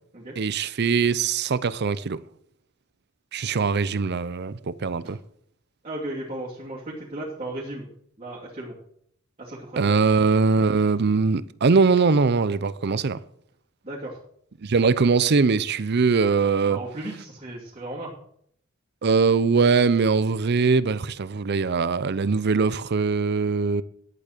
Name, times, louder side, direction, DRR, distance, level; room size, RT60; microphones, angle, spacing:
voice 1, 0.4-2.2 3.3-5.2 9.8-13.2 14.6-16.8 19.0-23.8, right 4 dB, 55° right, 0.6 m, -21 dB
voice 2, 5.8-7.9 8.2-8.7 9.4-10.0 13.8-14.2 16.6-18.1, right 1 dB, 30° right, 2.6 m, -35 dB
11.0 x 8.6 x 6.6 m
head